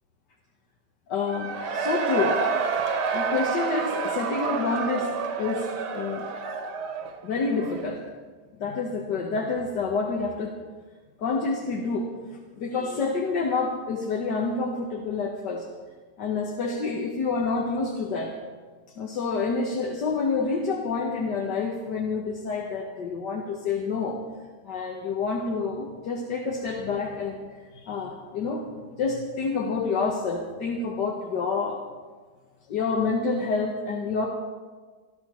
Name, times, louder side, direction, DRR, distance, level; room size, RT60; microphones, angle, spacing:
voice 1, 1.1-2.4 3.1-5.7 5.9-6.3 7.2-8.0 8.6-10.6 11.2-12.1 12.5-15.7 16.2-18.4 19.0-24.2 24.7-27.4 27.7-28.6 29.0-31.8 32.7-34.3, left 4 dB, 85° left, -1 dB, 1.9 m, -28 dB
Cheering / Crowd, 1.3-8.0, right 5 dB, 75° right, 1.6 m, -29 dB
28.0 x 12.0 x 3.1 m, 1.4 s
omnidirectional pair, 1.8 m